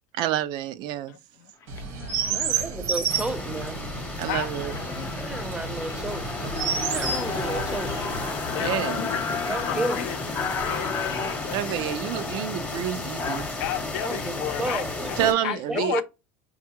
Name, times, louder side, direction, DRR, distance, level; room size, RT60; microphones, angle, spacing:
voice 1, 0.1-1.1 4.2-4.7 8.6-9.1 11.5-13.5 15.2-16.0, right 11 dB, 60° right, 0.4 m, -28 dB
voice 2, 1.1-1.5 1.8-2.7 4.3-4.5 8.5-12.0 13.6-15.2 15.4-16.0, left 12 dB, 80° left, 0.4 m, -34 dB
sound 1, 1.6-1.8 2.4-2.7 3.2-3.6 4.1-4.2 4.4-13.8, left 5 dB, 35° left, 0.7 m, -34 dB
Chirp tweet, 1.7-8.3, right 6 dB, 85° right, 1.1 m, -31 dB
voice 3, 2.2-4.2 4.9-8.2 9.5-10.1 14.0-16.0, right 2 dB, 10° right, 0.6 m, -33 dB
sound 2, 3.1-15.3, left 3 dB, 15° left, 0.9 m, -33 dB
5.3 x 2.3 x 2.8 m
supercardioid pair, 100°, 9 cm